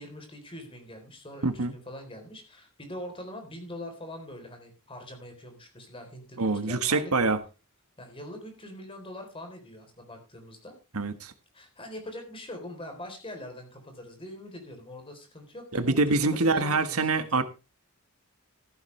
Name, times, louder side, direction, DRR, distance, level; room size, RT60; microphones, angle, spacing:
voice 1, 0.0-7.1 8.0-10.8 11.5-17.4, left 1 dB, 25° left, 3.9 m, -43 dB
voice 2, 1.4-1.7 6.4-7.4 10.9-11.3 15.7-17.4, right 3 dB, 80° right, 1.4 m, -25 dB
14.5 x 11.5 x 3.3 m
head